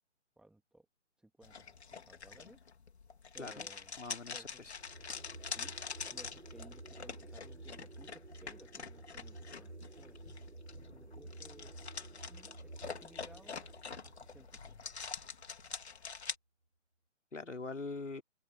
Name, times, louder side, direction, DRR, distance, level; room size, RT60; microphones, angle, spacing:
voice 1, 0.4-0.9 1.2-2.6 3.3-4.0 4.3-4.7 5.5-5.7 6.1-10.2 10.7-11.7 12.2-13.6 14.0-14.8, right 1 dB, ahead, 2.9 m, -59 dB
sound 1, 1.4-16.4, left 5 dB, 60° left, 3.7 m, -45 dB
voice 2, 3.4-3.7 4.0-4.7 17.3-18.2, left 3 dB, 75° left, 3.3 m, -43 dB
sound 2, 4.7-16.1, right 2 dB, 90° right, 6.7 m, -52 dB
figure-of-eight pair, 140°, 37 cm